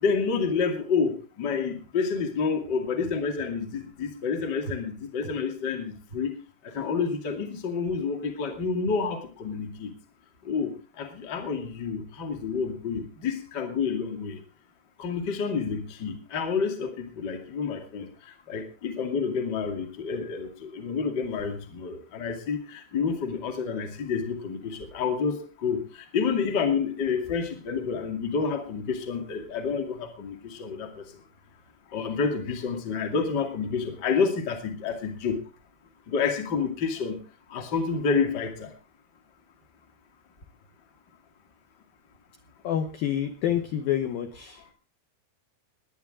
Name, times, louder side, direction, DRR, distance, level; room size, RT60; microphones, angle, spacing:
voice 1, 0.0-6.4 6.7-9.9 10.4-14.4 15.0-18.1 18.5-30.9 31.9-35.4 36.1-37.2 37.5-38.7, left 5 dB, 35° left, 5 dB, 1.7 m, -29 dB
voice 2, 42.6-44.7, left 10 dB, 75° left, 7 dB, 2.2 m, -28 dB
20.0 x 10.0 x 3.7 m, 0.33 s
omnidirectional pair, 5.7 m